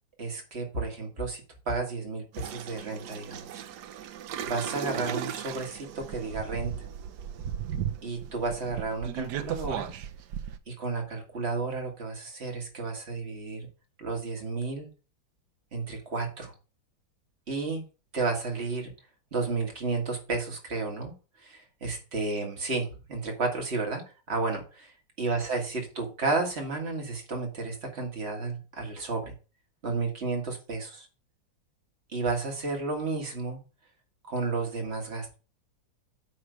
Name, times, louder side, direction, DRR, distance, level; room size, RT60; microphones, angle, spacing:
voice 1, 0.2-3.6 4.4-6.9 8.0-9.9 10.7-13.7 14.0-14.9 15.7-16.5 17.5-17.8 18.1-18.9 19.3-21.1 21.4-24.0 24.3-24.9 25.2-29.3 29.8-31.1 32.1-33.6 34.3-35.4, right 3 dB, 35° right, 2 dB, 1.9 m, -32 dB
sound 1, 2.3-10.6, right 9 dB, 70° right, 1.2 m, -36 dB
9.2 x 3.2 x 6.2 m, 0.34 s
omnidirectional pair, 2.1 m